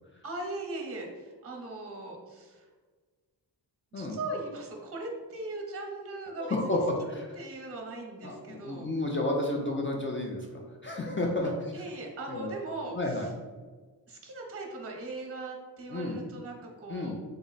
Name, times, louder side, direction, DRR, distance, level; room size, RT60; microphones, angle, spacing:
voice 1, 0.2-2.7 3.9-6.8 7.3-8.9 11.4-13.3 14.1-17.1, right 2 dB, 35° right, 1 dB, 0.7 m, -39 dB
voice 2, 6.4-6.8 7.0-7.3 8.2-11.5 12.3-12.5 12.9-13.3 15.9-16.2 16.9-17.2, left 2 dB, 30° left, -1 dB, 0.4 m, -31 dB
3.8 x 2.1 x 3.9 m, 1.4 s
wide cardioid pair, 95°, 43 cm